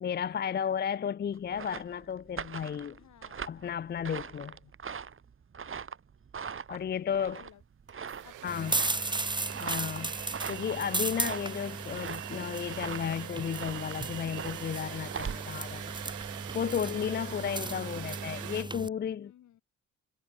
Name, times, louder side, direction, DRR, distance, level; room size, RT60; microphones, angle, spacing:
voice 1, 0.0-3.0 3.5-4.6 6.7-7.4 8.4-8.7 9.6-10.2 10.5-15.9 16.5-19.3, left 8 dB, 35° left, 0.5 m, -33 dB
sound 1, 1.3-16.6, right 6 dB, 45° right, 5.9 m, -42 dB
voice 2, 3.0-3.6 7.3-7.6 8.2-9.5 17.8-18.5 19.2-19.6, left 11 dB, 75° left, 6.6 m, -57 dB
sound 2, 7.4-7.5 7.9-18.6, right 15 dB, 85° right, 5.8 m, -43 dB
sound 3, 8.5-18.9, right 2 dB, 15° right, 2.5 m, -36 dB
cardioid pair, 90°, 30 cm